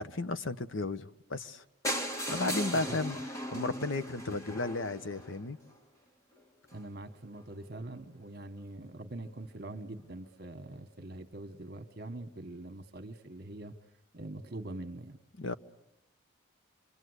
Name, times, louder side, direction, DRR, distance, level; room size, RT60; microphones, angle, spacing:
voice 1, 0.0-1.6 2.3-5.6 15.4-15.5, left 2 dB, 75° left, 1.1 m, -34 dB
sound 1, 1.8-5.7 6.4-6.5 6.7-6.8 7.1-7.2 7.4-7.5, equal, 15° left, 1.8 m, -37 dB
voice 2, 6.7-13.7 14.1-15.2, right 2 dB, 50° right, 1.6 m, -43 dB
29.0 x 25.0 x 8.2 m
head